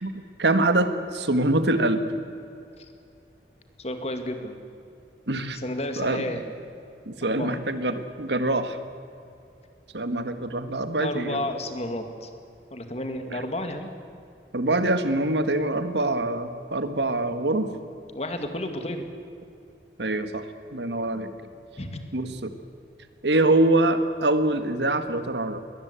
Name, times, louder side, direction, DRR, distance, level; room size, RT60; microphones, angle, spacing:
voice 1, 0.0-2.1 5.3-5.6 6.0-6.2 7.0-8.8 9.9-11.4 13.3-13.4 14.5-17.7 20.0-20.4 20.7-21.3 22.1-22.5 23.2-25.6, right 2 dB, 75° right, 9 dB, 1.6 m, -24 dB
voice 2, 3.8-4.6 5.6-6.5 7.2-7.6 11.0-12.3 12.7-13.9 18.1-19.1 21.8-22.0, left 1 dB, 35° left, 6 dB, 2.2 m, -32 dB
21.5 x 19.0 x 8.3 m, 2.5 s
head